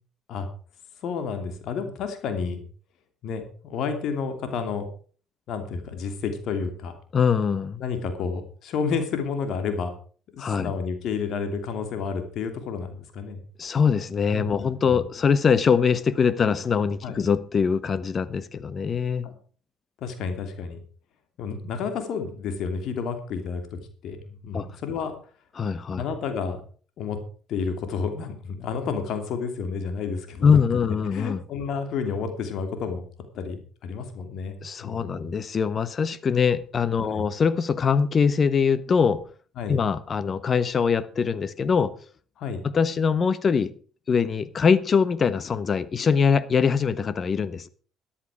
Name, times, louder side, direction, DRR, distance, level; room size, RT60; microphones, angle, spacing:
voice 1, 1.0-2.6 3.2-4.9 5.5-6.9 7.8-9.9 10.3-13.4 14.3-14.5 14.9-15.0 17.0-17.2 19.2-19.3 20.0-20.8 21.4-25.1 26.0-26.6 27.0-27.2 27.5-30.6 30.9-33.0 33.3-34.6 34.8-35.3 37.0-37.2 39.6-39.8 42.4-42.6, left 5 dB, 65° left, 2.8 m, -30 dB
voice 2, 7.1-7.8 10.4-10.7 13.6-19.3 24.5-24.7 25.6-26.0 30.4-31.4 34.6-39.2 39.7-41.9 42.6-43.7 44.1-47.7, left 6 dB, 45° left, 1.1 m, -23 dB
13.5 x 10.5 x 4.9 m
hypercardioid pair, 60°, 0 cm